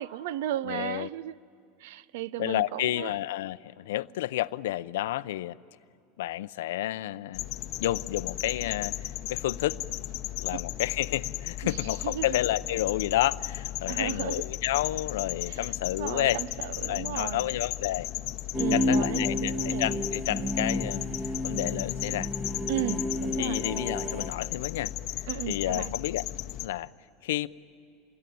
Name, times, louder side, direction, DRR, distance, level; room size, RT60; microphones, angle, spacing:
voice 1, 0.0-1.3 1.8-3.1 11.6-12.4 13.9-14.4 16.0-17.5 18.6-19.9 22.7-23.6 25.3-25.9, right 13 dB, 75° right, 0.6 m, -35 dB
voice 2, 0.6-1.1 2.4-5.6 6.2-7.4 7.8-8.9 9.3-9.8 10.4-16.4 16.9-18.1 18.7-21.0 21.4-22.3 23.4-24.9 25.5-26.3 26.6-26.9 27.2-27.5, left 15 dB, 90° left, 0.6 m, -30 dB
sound 1, 7.3-26.7, left 15 dB, 45° left, 0.8 m, -35 dB
sound 2, 18.5-24.3, left 1 dB, 15° right, 1.5 m, -30 dB
27.5 x 20.5 x 9.3 m
supercardioid pair, 165°, 0 cm